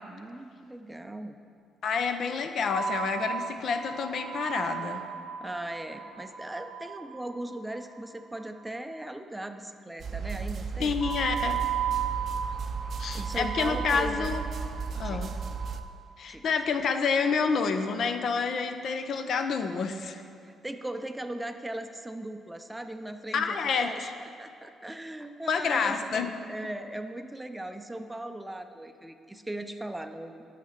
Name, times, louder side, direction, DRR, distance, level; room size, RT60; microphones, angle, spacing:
voice 1, 0.1-1.4 5.4-11.0 13.1-14.3 15.0-15.3 16.3-16.5 20.4-30.5, right 1 dB, 10° right, 7 dB, 0.5 m, -38 dB
voice 2, 1.8-5.0 10.8-11.6 13.0-14.4 15.0-15.4 16.2-20.2 23.3-24.1 25.5-26.3, left 5 dB, 60° left, 7 dB, 0.6 m, -28 dB
sound 1, 2.7-8.1 11.0-15.8, right 8 dB, 45° left, 2.2 m, -35 dB
sound 2, 10.0-15.8, right 5 dB, 55° right, 0.5 m, -35 dB
9.2 x 5.8 x 6.7 m, 2.4 s
cardioid pair, 90°, 0 cm